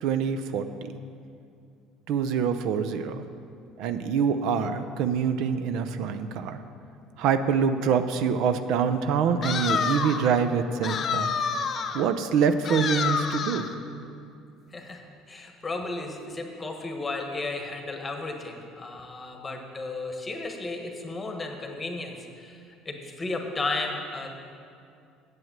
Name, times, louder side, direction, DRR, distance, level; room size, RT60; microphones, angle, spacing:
voice 1, 0.0-0.6 2.1-3.2 3.8-6.6 7.2-11.3 11.9-13.6, right 6 dB, 70° right, 10 dB, 0.5 m, -25 dB
sound 1, 9.4-10.3 10.8-12.1 12.6-13.7, left 6 dB, 40° left, 0.7 m, -28 dB
voice 2, 14.7-22.6 22.8-24.3, left 2 dB, 20° left, 3 dB, 1.3 m, -34 dB
7.8 x 7.8 x 7.3 m, 2.4 s
cardioid pair, 110°, 0 cm